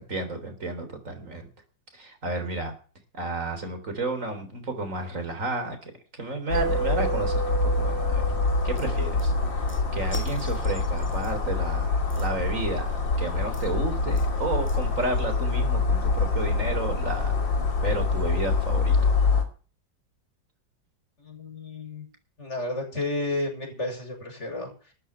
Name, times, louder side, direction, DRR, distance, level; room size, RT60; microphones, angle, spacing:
voice 1, 0.0-1.5 1.9-2.7 3.1-5.9 6.2-8.2 8.6-9.6 9.9-17.5 17.8-19.1, right 2 dB, 40° right, 7 dB, 4.2 m, -32 dB
sound 1, 6.5-19.4, left 4 dB, 80° left, 3.4 m, -25 dB
Mallet percussion, 6.5-10.0, right 8 dB, 70° right, 1.5 m, -33 dB
sound 2, 8.1-15.3, left 2 dB, 5° left, 1.8 m, -44 dB
voice 2, 21.2-22.1 22.4-24.9, left 2 dB, 35° left, 3 dB, 7.2 m, -32 dB
14.0 x 7.9 x 8.8 m, 0.39 s
omnidirectional pair, 2.0 m